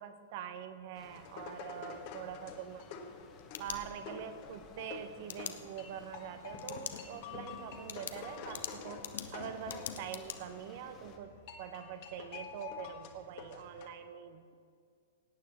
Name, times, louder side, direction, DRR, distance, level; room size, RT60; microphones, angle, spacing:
voice 1, 0.0-2.9 3.6-14.6, right 9 dB, 50° right, 10 dB, 0.8 m, -44 dB
sound 1, 0.9-11.2, left 5 dB, 25° left, 1.3 m, -57 dB
sound 2, 1.0-13.9, left 6 dB, 45° left, 1.3 m, -48 dB
sound 3, 3.2-4.3 5.3-5.5 6.6-7.0 7.4-7.5 7.9-10.4, left 9 dB, 65° left, 0.8 m, -43 dB
17.5 x 9.3 x 4.4 m, 2.2 s
figure-of-eight pair, 105°, 0 cm